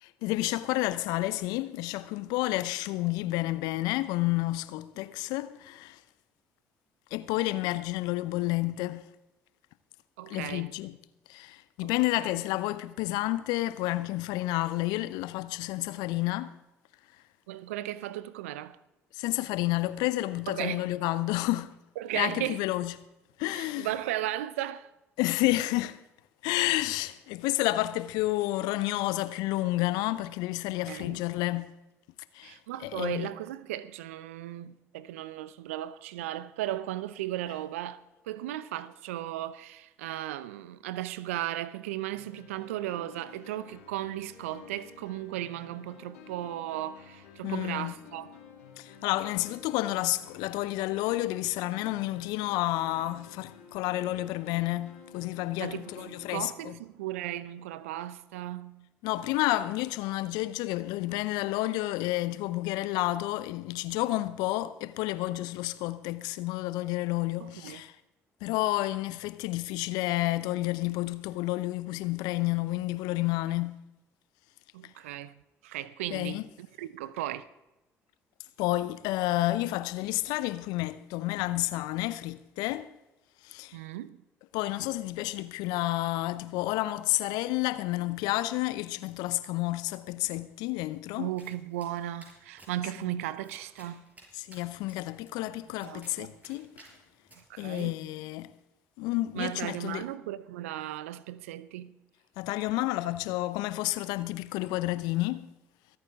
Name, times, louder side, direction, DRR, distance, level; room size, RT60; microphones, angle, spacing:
voice 1, 0.0-6.0 7.1-9.1 10.3-11.0 11.3-16.5 19.1-21.7 22.1-22.9 23.4-23.9 25.2-26.0 26.4-31.7 32.3-33.3 47.4-47.9 48.8-56.7 59.0-67.9 68.4-73.8 76.1-76.4 78.6-82.9 83.4-83.8 84.5-91.3 94.3-96.7 97.6-98.5 99.0-100.1 102.4-105.5, left 17 dB, 70° left, 0.6 m, -30 dB
voice 2, 10.2-10.7 11.8-12.3 17.5-18.8 20.5-20.9 22.0-22.6 23.5-24.9 30.9-31.2 32.4-38.0 38.3-48.3 55.6-58.9 67.4-67.8 73.5-73.6 74.7-77.5 83.7-84.2 91.2-94.0 95.8-96.4 97.3-98.0 99.3-101.9, right 13 dB, 80° right, 0.6 m, -36 dB
sound 1, 42.1-56.4, left 6 dB, 85° left, 2.1 m, -51 dB
Domestic sounds home sounds, 91.4-97.8, right 1 dB, 20° right, 5.8 m, -57 dB
24.5 x 8.9 x 3.6 m
hypercardioid pair, 55°, 7 cm